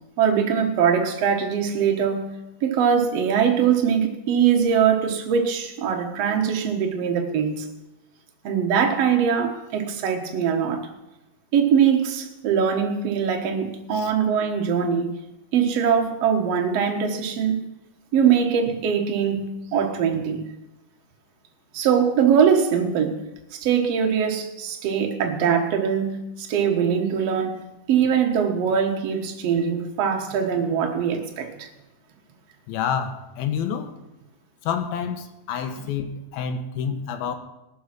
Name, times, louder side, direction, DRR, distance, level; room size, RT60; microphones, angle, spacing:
voice 1, 0.2-2.3 2.6-7.7 8.4-10.9 11.5-15.1 15.5-17.6 18.1-20.4 21.7-23.1 23.6-27.6 27.9-31.7, right 7 dB, 60° right, 3 dB, 1.9 m, -22 dB
voice 2, 32.7-33.9 34.6-37.4, left 7 dB, 75° left, 8 dB, 2.8 m, -28 dB
19.5 x 7.1 x 6.1 m, 0.95 s
omnidirectional pair, 4.4 m